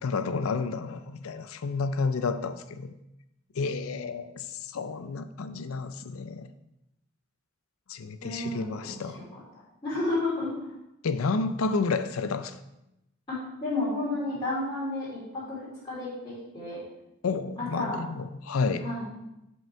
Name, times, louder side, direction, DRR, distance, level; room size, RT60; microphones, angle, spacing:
voice 1, 0.0-2.9 3.5-6.5 7.9-9.2 11.0-12.6 17.2-18.9, left 4 dB, 80° left, 11 dB, 0.5 m, -30 dB
voice 2, 8.2-9.0 9.8-10.7 13.3-15.6 15.8-16.8 17.6-18.0 18.8-19.1, left 2 dB, 25° left, -12 dB, 3.1 m, -31 dB
7.7 x 5.2 x 4.6 m, 0.88 s
head